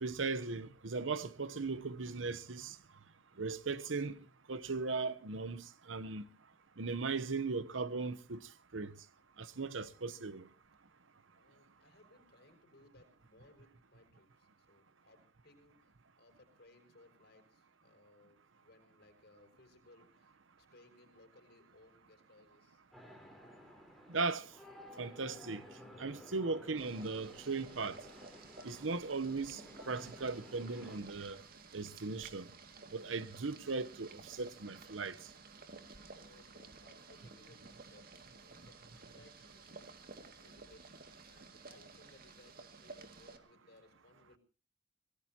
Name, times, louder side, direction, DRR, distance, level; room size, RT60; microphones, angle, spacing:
voice 1, 0.0-2.8 3.4-4.2 4.5-6.3 6.8-8.9 9.4-10.5 24.1-24.5 25.0-25.6 26.0-28.0 28.6-31.4 31.7-32.5 32.9-35.3, right 4 dB, 90° right, 0.9 m, -38 dB
voice 2, 11.3-22.8 32.4-32.5 36.0-38.1 38.3-39.9 40.4-40.8 41.2-44.4, left 2 dB, 55° left, 6.4 m, -64 dB
sound 1, 22.9-31.0, left 1 dB, ahead, 4.1 m, -55 dB
Boiling, 26.8-43.4, right 3 dB, 50° right, 2.3 m, -54 dB
25.0 x 19.5 x 2.9 m
head